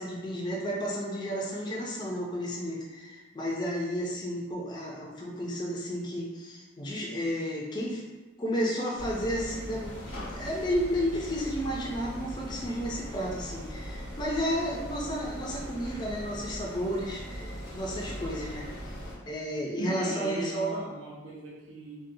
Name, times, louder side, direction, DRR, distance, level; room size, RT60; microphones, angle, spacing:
voice 1, 0.0-8.0 8.4-18.7 19.3-20.8, equal, 20° left, -3 dB, 0.3 m, -32 dB
sound 1, 9.0-19.1, equal, 85° left, 0.8 m, -40 dB
voice 2, 19.8-22.0, right 2 dB, 90° right, -6 dB, 0.7 m, -38 dB
2.6 x 2.1 x 2.6 m, 1.2 s
head